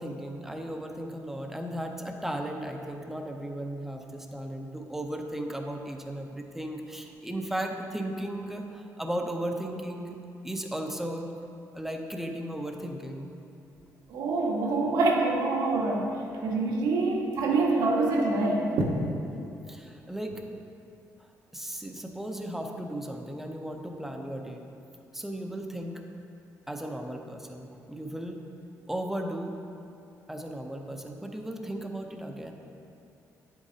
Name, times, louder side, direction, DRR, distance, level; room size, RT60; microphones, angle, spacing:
voice 1, 0.0-10.2 10.4-11.3 11.7-13.3 19.7-20.4 21.2-24.6 25.1-26.0 26.7-28.4 28.9-29.6 30.3-32.5, right 1 dB, 5° right, 3 dB, 0.6 m, -36 dB
voice 2, 14.1-16.1 16.4-18.9, right 3 dB, 85° right, -1 dB, 1.2 m, -25 dB
9.6 x 7.9 x 2.8 m, 2.7 s
cardioid pair, 140°, 6 cm